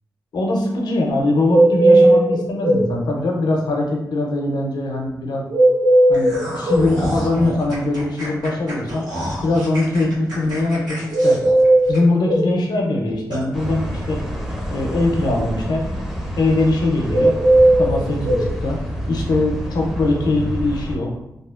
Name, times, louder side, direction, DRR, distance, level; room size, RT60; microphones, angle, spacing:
voice 1, 0.3-5.5 6.1-9.1 9.4-11.4 11.9-14.2 14.7-15.8 16.4-17.3 17.8-18.8 19.1-21.1, left 2 dB, 85° left, 1 dB, 0.5 m, -21 dB
sound 1, 1.5-2.9 5.5-6.9 11.1-12.5 17.1-18.5, right 1 dB, 65° right, 0.7 m, -15 dB
sound 2, 6.1-12.4 12.8-12.9 13.3-13.4, equal, 80° right, 1.1 m, -30 dB
sound 3, 13.5-21.0, equal, 5° right, 0.5 m, -28 dB
2.7 x 2.4 x 2.3 m, 0.87 s
cardioid pair, 75°, 7 cm